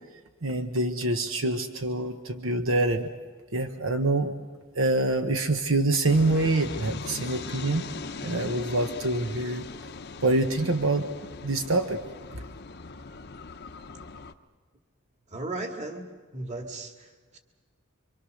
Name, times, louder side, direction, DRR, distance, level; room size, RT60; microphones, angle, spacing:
voice 1, 0.4-3.1 3.5-4.3 4.7-7.9 8.2-9.6 10.2-11.1 11.4-12.0 12.3-12.4, right 2 dB, 75° right, 6 dB, 1.2 m, -25 dB
sound 1, 6.0-14.3, left 4 dB, 50° left, 0.8 m, -40 dB
voice 2, 15.3-16.1 16.3-17.1 17.3-17.4, right 2 dB, 35° right, 4 dB, 2.1 m, -35 dB
26.5 x 24.5 x 6.5 m, 1.4 s
head